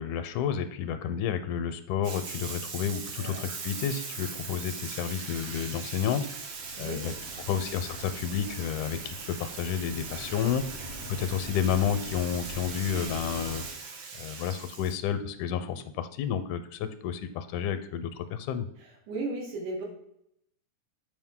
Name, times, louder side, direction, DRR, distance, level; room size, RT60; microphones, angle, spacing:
voice 1, 0.0-6.5 6.8-7.1 7.5-10.6 11.1-13.6 14.2-18.7, left 8 dB, 80° left, 10 dB, 2.1 m, -31 dB
Bathtub (filling or washing), 2.0-14.9, right 5 dB, 70° right, 2.5 m, -40 dB
sound 1, 6.3-13.7, equal, 45° right, 1.3 m, -45 dB
voice 2, 6.7-7.5 18.8-19.9, right 2 dB, 90° right, 0 dB, 3.2 m, -37 dB
7.8 x 5.1 x 3.7 m, 0.75 s
omnidirectional pair, 3.5 m